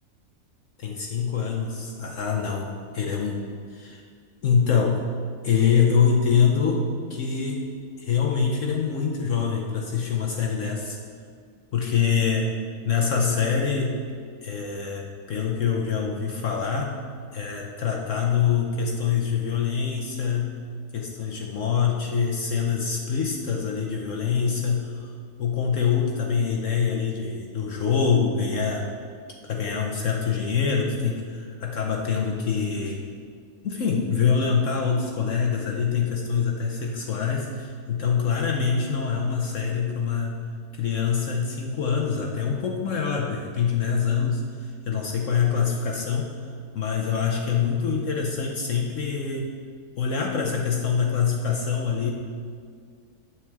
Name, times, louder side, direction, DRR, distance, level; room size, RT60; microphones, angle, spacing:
voice 1, 0.8-4.0 4.4-5.0 5.4-7.7 8.0-11.0 11.7-12.5 12.8-14.0 14.4-17.0 17.3-20.6 20.9-25.1 25.4-28.9 29.5-33.1 33.6-40.4 40.7-46.5 46.7-49.5 50.0-52.1, left 6 dB, 60° left, 1 dB, 1.1 m, -25 dB
9.2 x 4.7 x 7.2 m, 2.1 s
omnidirectional pair, 1.6 m